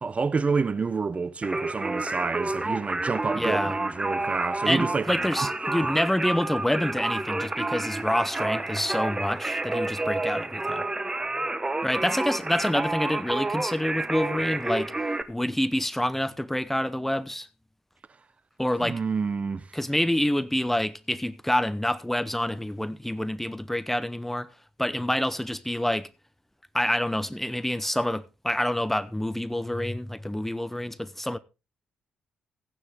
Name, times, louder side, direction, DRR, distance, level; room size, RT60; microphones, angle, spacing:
voice 1, 0.0-5.1 18.8-19.7, right 4 dB, 40° right, 0.9 m, -28 dB
Singing, 1.4-15.2, right 2 dB, 20° right, 1.2 m, -29 dB
voice 2, 3.4-3.8 4.7-10.8 11.8-14.9 15.3-17.5 18.6-19.0 19.7-24.5 24.8-26.1 26.7-31.4, left 1 dB, 5° left, 0.7 m, -27 dB
15.0 x 9.7 x 3.6 m
hypercardioid pair, 45°, 4 cm